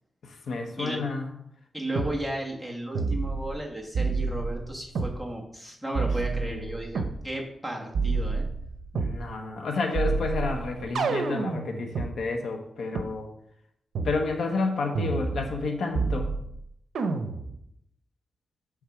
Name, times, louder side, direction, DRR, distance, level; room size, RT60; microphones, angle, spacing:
voice 1, 0.2-1.3 6.4-6.9 8.9-13.3 14.0-16.3, left 3 dB, 65° left, 4 dB, 1.0 m, -30 dB
voice 2, 1.7-8.4, right 1 dB, ahead, -1 dB, 1.3 m, -34 dB
sound 1, 2.0-2.1 3.0-3.6 4.0-5.2 6.0-7.2 7.9-9.2 10.0-12.1 13.0-13.1 14.0-14.2 15.0-15.7 16.0-16.6 17.0-17.6, right 4 dB, 75° right, 0.7 m, -29 dB
8.5 x 3.6 x 5.9 m, 0.74 s
wide cardioid pair, 170°, 0 cm